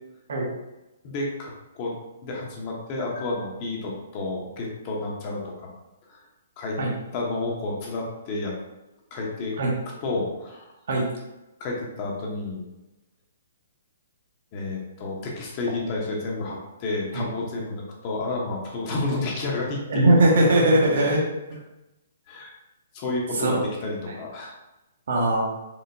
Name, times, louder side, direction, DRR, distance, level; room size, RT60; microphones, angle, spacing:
voice 1, 1.0-1.9 2.2-5.5 6.1-6.2 6.6-6.8 7.1-8.5 9.1-9.5 10.0-10.7 11.6-12.7 14.5-20.2 21.0-21.1 22.3-22.5 22.9-24.5, left 2 dB, 35° left, -2 dB, 1.1 m, -30 dB
voice 2, 19.9-21.2 21.5-21.6 23.3-23.6 24.1-24.2 25.1-25.4, right 1 dB, 65° right, -3 dB, 1.2 m, -20 dB
4.9 x 3.3 x 2.7 m, 0.99 s
hypercardioid pair, 150°, 0 cm